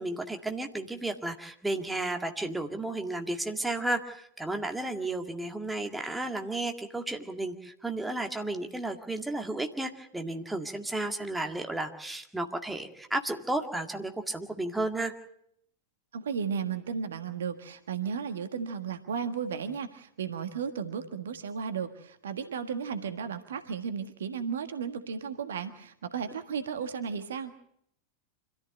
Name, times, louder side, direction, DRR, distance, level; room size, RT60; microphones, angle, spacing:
voice 1, 0.0-15.1, right 2 dB, 5° right, 4 dB, 1.9 m, -33 dB
voice 2, 16.1-27.6, right 6 dB, 65° right, 9 dB, 1.5 m, -34 dB
26.0 x 14.0 x 7.8 m, 0.72 s
figure-of-eight pair, 90°, 0 cm